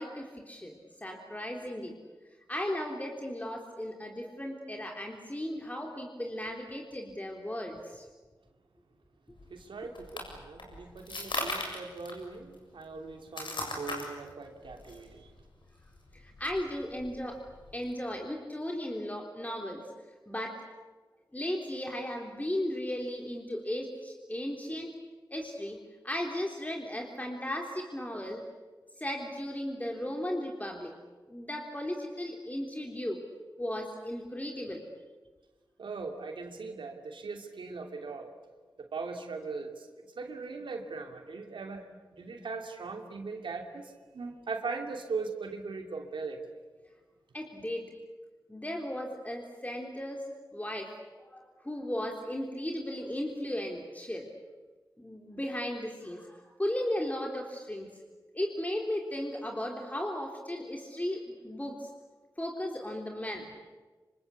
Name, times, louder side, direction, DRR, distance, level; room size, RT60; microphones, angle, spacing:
voice 1, 0.0-1.9 2.5-8.1 16.1-17.4 17.7-19.9 20.3-20.6 21.3-24.9 25.3-25.8 26.0-28.4 29.0-30.9 31.3-33.2 33.6-34.8 47.3-47.9 48.5-50.3 50.5-54.3 55.0-57.9 58.3-61.9 62.4-63.5, left 1 dB, 20° left, 1 dB, 3.8 m, -36 dB
sound 1, 9.3-17.9, left 2 dB, 75° left, 7.3 m, -40 dB
voice 2, 9.5-15.3 35.8-38.3 38.8-41.8 42.1-46.4, right 4 dB, 85° right, 4 dB, 2.8 m, -40 dB
26.5 x 25.5 x 8.4 m, 1.3 s
cardioid pair, 40°, 8 cm